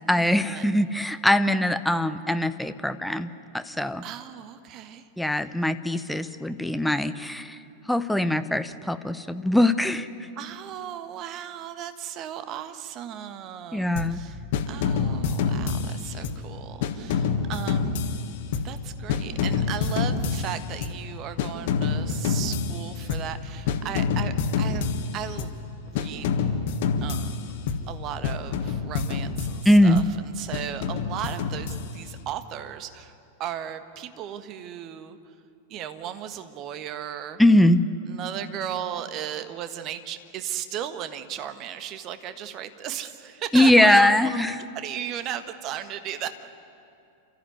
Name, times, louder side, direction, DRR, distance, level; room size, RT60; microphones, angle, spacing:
voice 1, 0.1-4.0 5.2-7.6 7.9-10.1 13.7-14.2 29.6-30.0 37.4-37.8 43.5-44.6, left 1 dB, ahead, 11 dB, 0.8 m, -21 dB
voice 2, 4.0-5.1 10.4-14.4 14.7-18.2 18.6-25.5 25.9-26.4 27.0-35.3 35.7-37.4 38.1-46.3, right 10 dB, 35° right, 10 dB, 1.4 m, -36 dB
sound 1, 14.0-14.2 14.5-16.5 16.8-18.8 19.1-21.0 21.4-23.4 23.7-25.6 26.0-28.0 28.2-30.1 30.5-32.2, left 5 dB, 50° left, 1.6 m, -27 dB
29.0 x 14.0 x 9.6 m, 2.6 s
figure-of-eight pair, 90°, 0 cm